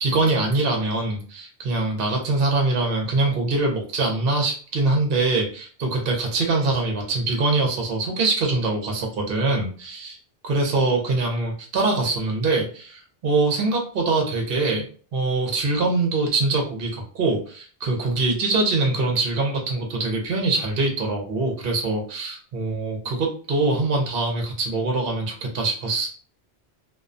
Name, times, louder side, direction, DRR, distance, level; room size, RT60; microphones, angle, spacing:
voice 1, 0.0-10.2 10.4-14.9 15.1-26.1, right 3 dB, 65° right, 1 dB, 0.9 m, -23 dB
2.3 x 2.2 x 2.5 m, 0.42 s
omnidirectional pair, 1.0 m